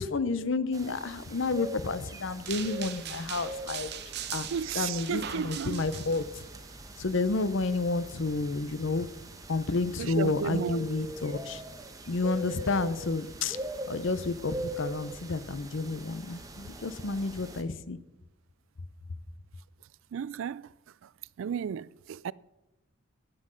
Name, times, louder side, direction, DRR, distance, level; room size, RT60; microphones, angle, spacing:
voice 1, 0.0-3.9 4.3-4.5 4.7-6.4 7.0-9.1 9.5-11.6 12.1-13.6 13.9-18.0, left 3 dB, 65° left, 0.7 m, -30 dB
sound 1, 0.7-17.6, right 1 dB, 15° right, 1.0 m, -42 dB
sound 2, 2.5-6.4, right 10 dB, 55° right, 0.8 m, -40 dB
voice 2, 4.5-5.9 10.0-10.9 20.1-20.7 21.4-22.3, right 7 dB, 70° right, 0.3 m, -33 dB
11.5 x 7.7 x 6.3 m
head